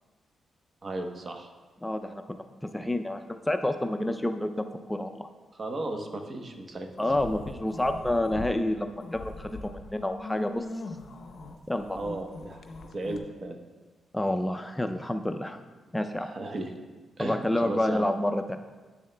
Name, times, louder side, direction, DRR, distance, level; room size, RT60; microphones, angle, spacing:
voice 1, 0.8-1.5 5.5-6.9 11.9-12.6 12.9-13.6 16.2-16.7 17.2-18.1, right 2 dB, 45° right, 4 dB, 0.9 m, -35 dB
voice 2, 1.8-2.2 2.7-5.3 7.0-9.5 9.9-10.7 11.7-12.0 14.1-15.6 15.9-16.3 17.2-18.6, left 1 dB, 10° left, 7 dB, 0.4 m, -28 dB
sound 1, 7.0-8.5 8.9-13.2, left 3 dB, 60° left, 0.7 m, -41 dB
9.5 x 7.0 x 2.2 m, 1.3 s
cardioid pair, 70°, 0 cm